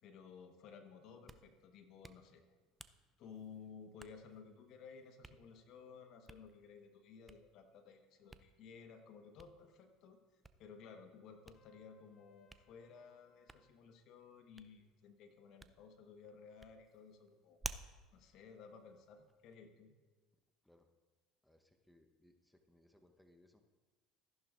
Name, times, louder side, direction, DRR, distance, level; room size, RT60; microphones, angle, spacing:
voice 1, 0.0-2.4 3.2-17.6 18.1-19.9, left 6 dB, 60° left, 7 dB, 1.1 m, -56 dB
Hands, 1.0-19.6, right 2 dB, 15° right, 0.5 m, -57 dB
Trumpet, 11.5-13.8, left 7 dB, 45° left, 0.8 m, -75 dB
voice 2, 21.4-23.6, left 1 dB, 5° left, 5 dB, 0.9 m, -68 dB
14.0 x 11.0 x 2.5 m, 1.3 s
hypercardioid pair, 85°, 0 cm